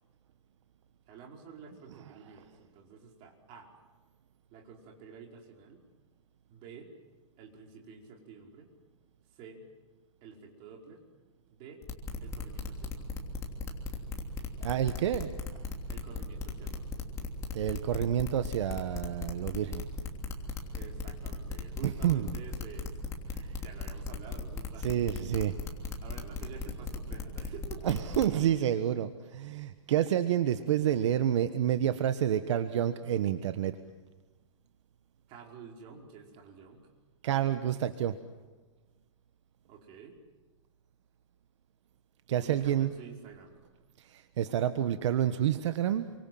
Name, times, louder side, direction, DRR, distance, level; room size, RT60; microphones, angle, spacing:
voice 1, 1.1-3.7 4.5-5.8 6.5-6.9 7.4-8.7 9.3-9.6 10.2-11.0 11.5-11.8 12.2-13.1 15.9-16.9 20.7-23.0 23.6-25.1 26.0-27.8 35.3-36.8 39.7-40.2 42.4-43.6, right 6 dB, 30° right, 1 dB, 5.0 m, -49 dB
sound 1, 11.8-28.3, left 5 dB, 15° left, 3.1 m, -37 dB
voice 2, 14.6-15.3 17.5-19.9 21.8-22.3 23.3-23.5 24.8-25.5 27.8-33.8 37.2-38.2 42.3-42.9 44.0-46.1, right 10 dB, 65° right, 10 dB, 1.3 m, -29 dB
28.5 x 25.0 x 7.8 m, 1.3 s
supercardioid pair, 160°, 16 cm